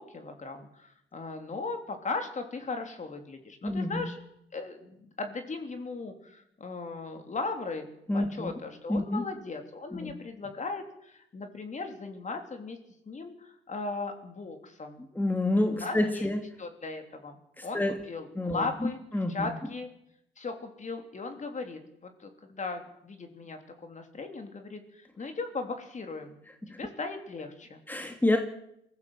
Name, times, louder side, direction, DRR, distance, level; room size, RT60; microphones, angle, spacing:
voice 1, 0.0-4.2 4.5-7.9 8.1-12.8 13.1-15.1 15.7-16.3 16.6-17.4 17.6-19.0 19.3-19.9 20.4-26.4 26.7-27.8, left 3 dB, 40° left, 5 dB, 3.5 m, -37 dB
voice 2, 3.6-4.0 8.1-8.5 8.9-9.2 9.9-10.1 15.2-16.4 17.6-17.9 18.4-18.6 19.1-19.4 27.9-28.4, left 1 dB, 10° left, 4 dB, 2.2 m, -28 dB
23.0 x 15.5 x 7.5 m, 0.80 s
cardioid pair, 90°, 20 cm